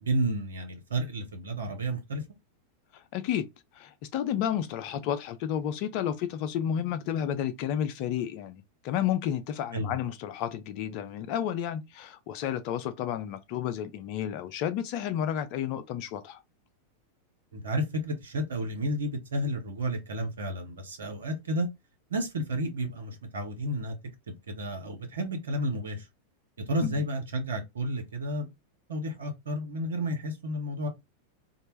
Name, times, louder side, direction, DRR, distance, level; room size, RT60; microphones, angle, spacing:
voice 1, 0.0-2.2 9.7-10.0 17.5-21.7 22.1-24.0 24.5-26.0 26.7-28.5 28.9-30.9, right 1 dB, 65° right, 0.7 m, -31 dB
voice 2, 2.9-3.5 3.7-16.4 26.8-27.0, left 10 dB, 45° left, 0.4 m, -31 dB
2.1 x 2.0 x 3.1 m
figure-of-eight pair, 90°, 0 cm